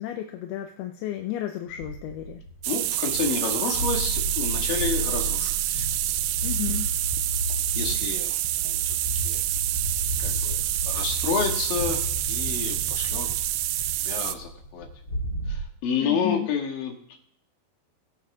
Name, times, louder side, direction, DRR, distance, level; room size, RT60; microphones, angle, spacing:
voice 1, 0.0-2.4 6.4-6.9 16.0-16.5, left 12 dB, 85° left, 5 dB, 2.7 m, -32 dB
sound 1, 1.7-15.6, equal, 20° left, 4.0 m, -33 dB
sound 2, 2.6-14.3, right 15 dB, 85° right, 2.6 m, -27 dB
voice 2, 2.7-5.9 7.8-9.0 9.2-9.4 10.2-12.0 12.3-13.4 14.1-14.9 15.5-17.0, left 6 dB, 70° left, 2 dB, 3.6 m, -30 dB
21.5 x 8.2 x 3.6 m, 0.72 s
omnidirectional pair, 4.4 m